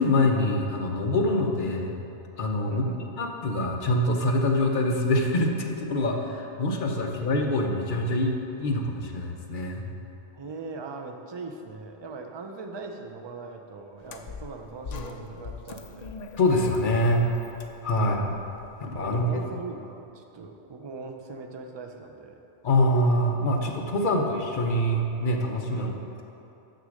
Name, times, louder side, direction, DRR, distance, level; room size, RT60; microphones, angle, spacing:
voice 1, 0.0-2.0 2.4-2.8 3.2-9.9 16.4-17.3 17.8-18.3 18.8-19.4 22.6-25.9, left 1 dB, 50° left, 1 dB, 0.9 m, -25 dB
voice 2, 2.7-3.1 7.2-7.4 10.3-16.1 17.9-18.3 19.0-22.4 24.0-24.1 25.7-26.0, right 3 dB, 40° right, 3 dB, 0.4 m, -40 dB
sound 1, 14.0-19.3, left 4 dB, 65° left, 0.4 m, -42 dB
6.7 x 6.2 x 6.4 m, 2.9 s
omnidirectional pair, 1.2 m